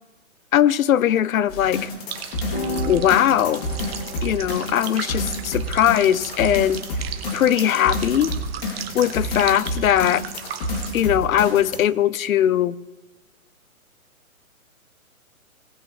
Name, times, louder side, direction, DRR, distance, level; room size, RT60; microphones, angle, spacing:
voice 1, 0.5-1.9 2.9-3.6 4.2-6.8 7.3-8.3 8.9-10.2 10.9-12.8, left 10 dB, 70° left, 0.6 m, -20 dB
sound 1, 1.5-11.8, left 1 dB, 45° left, 2.8 m, -29 dB
sound 2, 2.1-11.0, right 8 dB, 45° right, 1.2 m, -37 dB
sound 3, 2.5-10.9, left 1 dB, 10° left, 0.5 m, -38 dB
18.5 x 8.2 x 3.3 m
hypercardioid pair, 155°, 42 cm